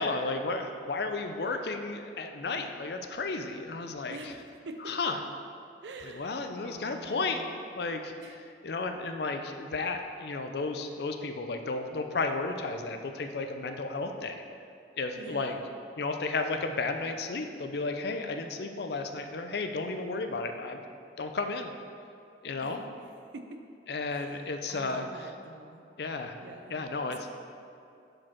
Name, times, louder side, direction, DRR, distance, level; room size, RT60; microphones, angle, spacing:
voice 1, 0.0-4.3 4.8-5.2 6.0-7.4 7.7-8.1 8.6-14.4 15.0-15.6 16.0-20.8 21.2-21.7 22.4-22.8 23.9-25.1 26.0-26.4 26.7-27.2, left 3 dB, 60° left, 6 dB, 0.5 m, -33 dB
voice 2, 4.1-4.8 5.8-7.6 8.2-8.4 15.2-15.6 22.6-22.8 23.3-23.6 24.1-25.8 26.4-26.7, right 2 dB, 80° right, 5 dB, 0.5 m, -46 dB
6.3 x 4.8 x 4.4 m, 2.6 s
head